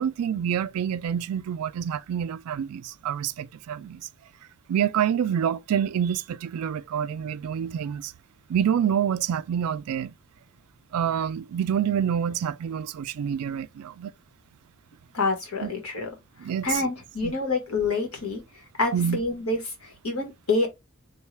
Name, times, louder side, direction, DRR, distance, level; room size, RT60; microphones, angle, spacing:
voice 1, 0.0-4.1 4.7-8.1 8.5-10.1 10.9-14.1 15.6-15.7 16.4-16.7 17.2-17.3 18.9-19.2, right 8 dB, 80° right, 0.3 m, -27 dB
voice 2, 15.1-16.1 16.4-20.7, left 3 dB, 80° left, 1.3 m, -27 dB
3.6 x 2.3 x 3.2 m
head